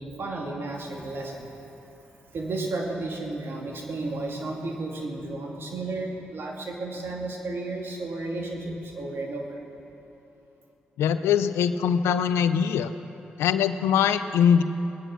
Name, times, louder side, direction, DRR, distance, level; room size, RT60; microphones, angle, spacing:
voice 1, 0.0-1.7 2.2-9.6, right 2 dB, 65° right, 0 dB, 2.6 m, -33 dB
voice 2, 11.0-12.9 13.4-14.6, left 8 dB, 90° left, 12 dB, 0.5 m, -22 dB
21.5 x 10.0 x 6.2 m, 3.0 s
supercardioid pair, 45°, 4 cm